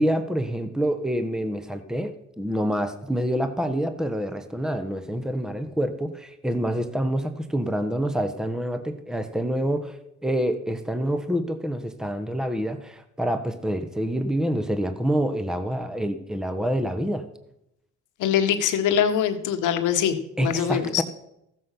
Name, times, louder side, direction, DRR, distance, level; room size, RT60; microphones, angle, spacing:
voice 1, 0.0-10.0 10.2-17.2 20.4-21.0, equal, ahead, 9 dB, 1.2 m, -27 dB
voice 2, 18.2-21.0, left 9 dB, 85° left, 8 dB, 1.4 m, -23 dB
15.5 x 7.6 x 5.8 m, 0.81 s
cardioid pair, 90°, 30 cm